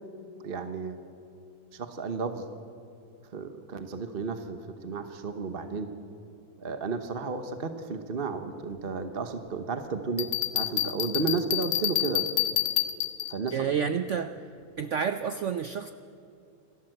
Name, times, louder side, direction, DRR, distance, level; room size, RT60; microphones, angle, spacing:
voice 1, 0.4-1.0 1.7-2.4 3.3-5.9 6.6-10.3 10.5-12.2 13.3-13.7, right 4 dB, 40° right, 8 dB, 1.0 m, -33 dB
Bell, 10.2-13.5, left 13 dB, 70° left, 1.4 m, -28 dB
voice 2, 13.5-14.5 14.8-15.9, right 7 dB, 85° right, 10 dB, 0.6 m, -29 dB
28.0 x 12.5 x 7.8 m, 2.6 s
omnidirectional pair, 2.0 m